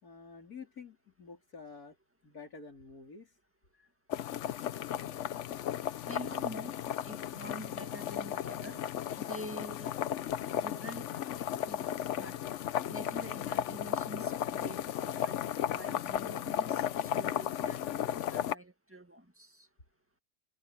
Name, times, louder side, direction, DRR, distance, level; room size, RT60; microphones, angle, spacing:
voice 1, 0.0-2.0 2.2-3.4, left 5 dB, 85° left, 4.3 m, -49 dB
sound 1, 4.1-18.5, left 10 dB, 60° left, 0.9 m, -35 dB
voice 2, 6.1-6.8 7.0-8.8 9.2-10.0 10.5-11.1 11.4-12.4 12.9-19.7, equal, 10° right, 1.8 m, -47 dB
omnidirectional pair, 1.5 m